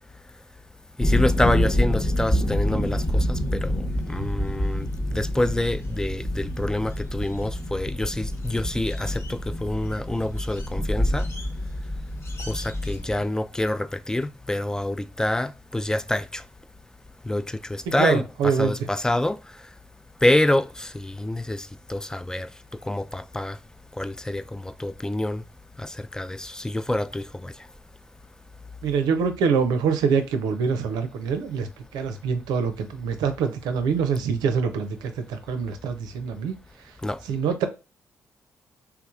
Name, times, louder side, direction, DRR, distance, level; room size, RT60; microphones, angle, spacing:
sound 1, 1.0-13.3, left 1 dB, 45° left, 1.1 m, -27 dB
voice 1, 1.0-11.3 12.5-16.4 17.2-19.4 20.2-22.5 22.8-23.6 24.0-25.4 25.8-27.5 37.0-37.2, left 1 dB, 10° left, 0.4 m, -27 dB
voice 2, 17.9-18.7 28.8-36.5 37.3-37.7, right 6 dB, 80° right, 0.6 m, -25 dB
3.4 x 3.1 x 2.4 m
hypercardioid pair, 45°, 7 cm